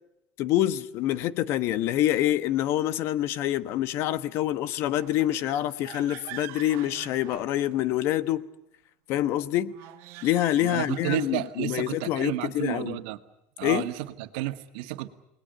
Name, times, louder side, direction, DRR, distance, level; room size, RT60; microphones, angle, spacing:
voice 1, 0.4-8.4 9.1-9.7 10.2-13.0 13.6-13.9, left 13 dB, 55° left, 1.2 m, -26 dB
sound 1, 4.9-8.1 9.7-11.7, right 17 dB, 60° right, 1.7 m, -45 dB
voice 2, 10.6-13.2 13.6-15.1, right 17 dB, 75° right, 1.8 m, -32 dB
29.5 x 20.5 x 8.1 m
supercardioid pair, 135°, 5 cm